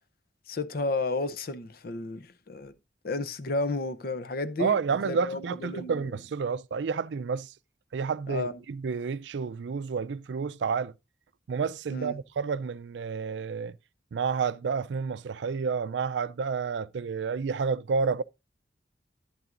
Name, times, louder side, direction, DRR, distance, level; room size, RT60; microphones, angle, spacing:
voice 1, 0.5-2.7 3.0-6.1 8.3-8.6 11.9-12.1, left 2 dB, 55° left, 0.7 m, -32 dB
voice 2, 4.6-7.5 7.9-10.9 11.5-13.8 14.1-18.2, right 5 dB, 75° right, 0.4 m, -30 dB
11.0 x 10.5 x 2.5 m
head